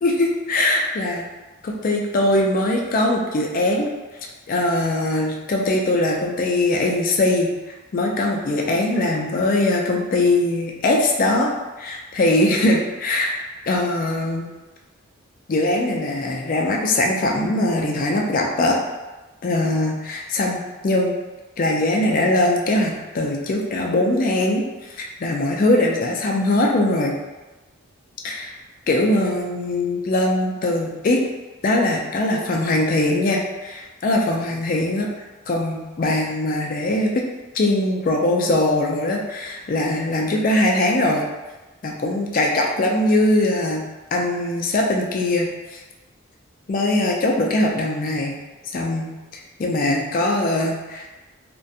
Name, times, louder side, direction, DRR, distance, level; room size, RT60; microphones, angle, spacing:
voice 1, 0.0-1.2 1.6-3.9 4.5-7.5 7.9-11.5 11.8-13.3 13.7-14.5 15.5-18.8 19.4-21.1 21.6-24.6 24.9-27.2 28.2-28.5 28.9-31.2 31.6-35.1 35.5-37.2 37.5-41.3 41.8-45.8 46.7-48.4 48.7-51.1, left 1 dB, 40° left, 0 dB, 0.3 m, -21 dB
2.4 x 2.1 x 2.6 m, 1.2 s
head